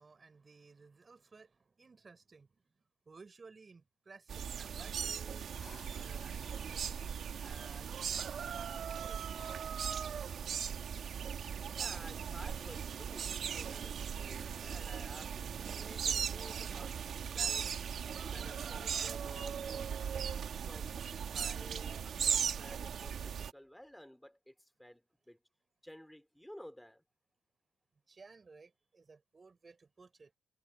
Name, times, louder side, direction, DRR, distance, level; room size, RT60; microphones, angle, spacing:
voice 1, 0.0-7.0 7.4-9.3 28.1-30.4, right 4 dB, 25° right, 4.0 m, -57 dB
sound 1, 4.3-23.5, right 7 dB, 50° right, 1.7 m, -38 dB
Drill, 4.9-5.0 5.6-8.5 9.4-9.6, left 6 dB, 35° left, 7.3 m, -59 dB
voice 2, 11.7-25.4 25.8-27.0, equal, 5° left, 2.8 m, -54 dB
cardioid pair, 130°, 0 cm